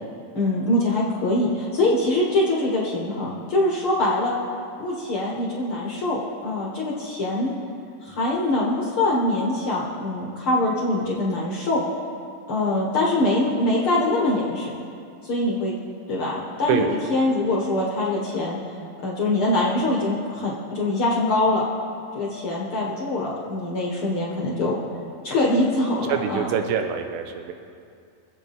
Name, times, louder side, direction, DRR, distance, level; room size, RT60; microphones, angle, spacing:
voice 1, 0.3-4.3 4.8-7.5 8.0-11.8 12.5-14.7 15.2-15.7 16.1-18.6 19.0-21.6 22.1-24.8 25.2-26.5, left 2 dB, 55° left, -4 dB, 1.6 m, -23 dB
voice 2, 26.1-27.5, right 8 dB, 90° right, 6 dB, 2.5 m, -25 dB
25.0 x 8.4 x 3.5 m, 2.4 s
omnidirectional pair, 4.2 m